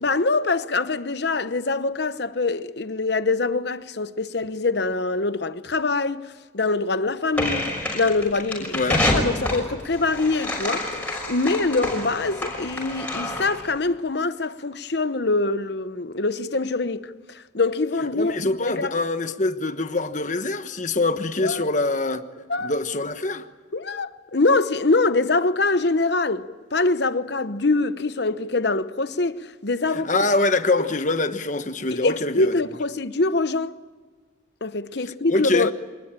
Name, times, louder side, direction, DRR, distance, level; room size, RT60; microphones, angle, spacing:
voice 1, 0.0-6.2 6.5-7.7 7.9-8.8 9.1-10.9 11.3-18.3 18.6-18.9 21.4-21.6 22.5-22.7 23.7-30.3 30.8-30.9 31.9-33.7 34.6-35.7, left 3 dB, 55° left, 0.9 m, -24 dB
sound 1, 7.3-13.7, left 1 dB, 5° left, 6.1 m, -27 dB
voice 2, 8.6-9.0 18.1-22.2 22.6-23.5 29.9-32.5 35.3-35.7, left 2 dB, 40° left, 1.2 m, -24 dB
26.5 x 20.0 x 9.0 m
head